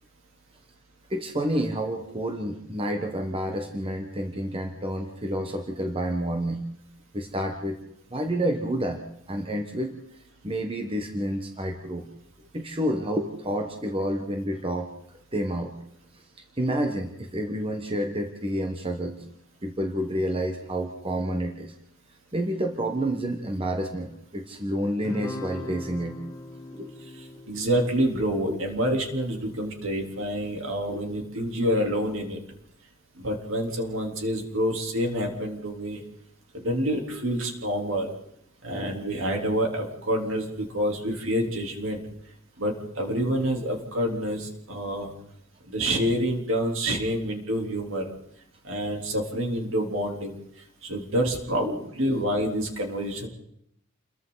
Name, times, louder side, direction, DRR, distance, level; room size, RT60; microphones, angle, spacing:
voice 1, 1.1-6.6 7.1-7.8 8.1-9.0 9.3-9.9 10.4-12.0 12.5-14.9 15.3-15.7 16.1-16.2 16.6-19.2 19.6-21.7 22.3-26.2 26.7-26.9 28.5-28.6 30.9-31.0 51.6-51.8 52.0-52.3, equal, 25° right, 4 dB, 1.3 m, -29 dB
Guitar, 25.0-29.7, left 1 dB, 15° left, 1.1 m, -40 dB
voice 2, 27.1-32.4 33.2-36.0 36.5-38.1 38.6-42.0 42.6-45.1 45.7-48.1 48.6-50.4 50.8-53.3, equal, 60° right, 2 dB, 3.7 m, -27 dB
29.0 x 22.0 x 4.1 m, 0.76 s
head